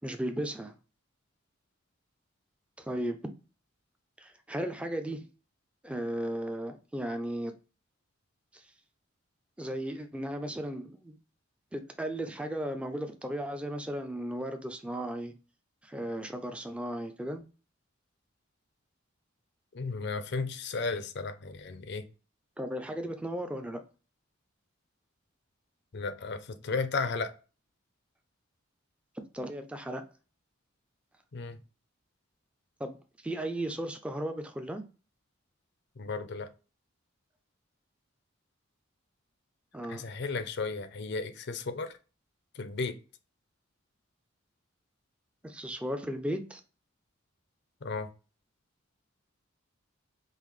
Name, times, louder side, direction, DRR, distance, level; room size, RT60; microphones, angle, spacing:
voice 1, 0.0-0.7 2.8-3.2 4.2-5.2 5.8-7.5 9.6-11.2 11.7-15.3 15.8-17.4 22.6-23.8 29.3-30.0 32.8-33.0 33.2-34.8 39.7-40.0 45.4-46.6, right 1 dB, 5° right, 0.4 m, -35 dB
voice 2, 19.7-22.0 25.9-27.3 31.3-31.6 36.0-36.5 39.9-41.9 42.6-43.0 47.8-48.1, left 4 dB, 55° left, 0.5 m, -34 dB
5.4 x 2.1 x 3.1 m
head